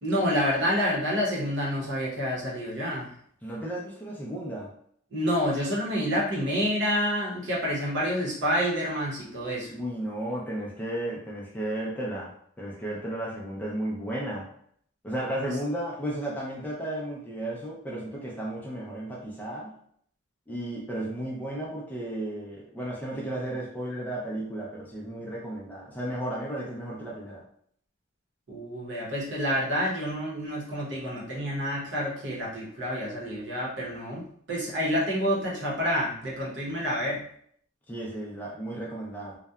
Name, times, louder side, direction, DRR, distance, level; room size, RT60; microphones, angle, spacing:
voice 1, 0.0-3.1 5.1-9.7 28.5-37.2, equal, 60° right, -4 dB, 0.8 m, -28 dB
voice 2, 3.4-4.7 9.7-12.3 12.6-14.5 15.0-19.7 20.5-27.4 37.9-39.4, right 1 dB, 10° left, -5 dB, 0.4 m, -34 dB
2.7 x 2.1 x 2.2 m, 0.65 s
head